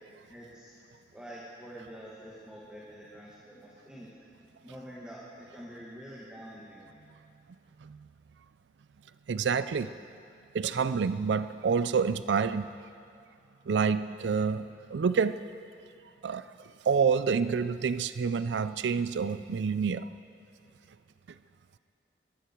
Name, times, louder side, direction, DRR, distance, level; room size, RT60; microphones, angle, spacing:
voice 1, 0.3-0.7 1.1-4.1 4.6-6.9, equal, 5° right, -6 dB, 1.7 m, -46 dB
voice 2, 9.3-9.9 10.5-12.7 13.7-15.4 16.2-16.5 16.9-20.1, right 5 dB, 85° right, 13 dB, 0.4 m, -28 dB
22.0 x 14.0 x 4.5 m, 2.5 s
head